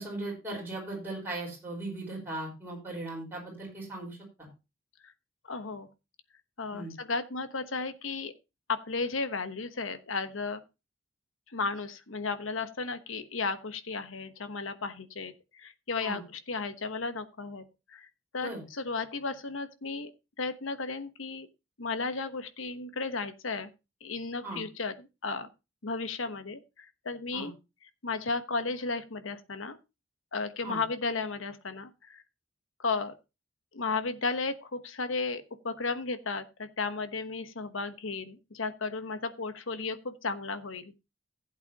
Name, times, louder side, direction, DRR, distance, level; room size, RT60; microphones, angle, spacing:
voice 1, 0.0-4.2 6.7-6.9 16.0-16.2 18.4-18.6 24.4-24.6 27.3-27.5 30.6-30.8, right 2 dB, 10° right, 4.9 m, -38 dB
voice 2, 5.5-5.9 6.6-8.3 8.7-10.6 11.5-18.1 18.3-20.1 20.4-21.5 21.8-23.7 24.0-25.5 25.8-27.5 28.0-29.8 30.3-32.2 32.8-33.1 33.7-40.9, left 4 dB, 90° left, 1.2 m, -34 dB
15.5 x 8.2 x 2.9 m
head